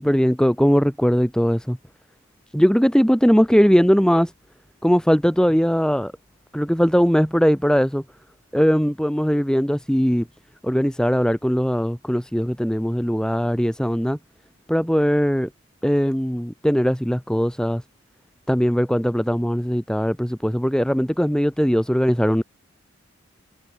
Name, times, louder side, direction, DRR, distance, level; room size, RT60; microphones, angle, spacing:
voice 1, 0.0-1.8 2.5-4.3 4.8-6.1 6.5-8.0 8.5-10.3 10.6-14.2 14.7-15.5 15.8-17.8 18.5-22.4, equal, 5° left, 2.1 m, -20 dB
head